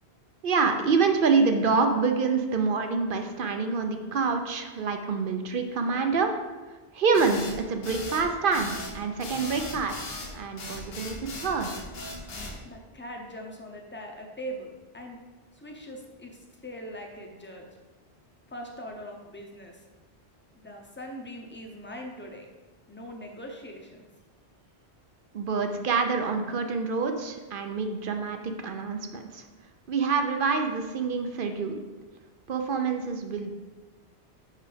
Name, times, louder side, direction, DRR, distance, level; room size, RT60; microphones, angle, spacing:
voice 1, 0.4-6.3 6.9-10.0 10.3-11.7 25.3-29.4 29.9-31.8 32.5-33.5, right 4 dB, 60° right, 6 dB, 0.7 m, -26 dB
sound 1, 7.1-12.6, left 2 dB, 65° left, 1.3 m, -38 dB
voice 2, 12.6-15.2 15.5-17.7 18.5-19.8 20.5-22.5 22.9-24.1, equal, 10° left, 1 dB, 0.8 m, -41 dB
5.8 x 4.7 x 5.0 m, 1.3 s
omnidirectional pair, 1.1 m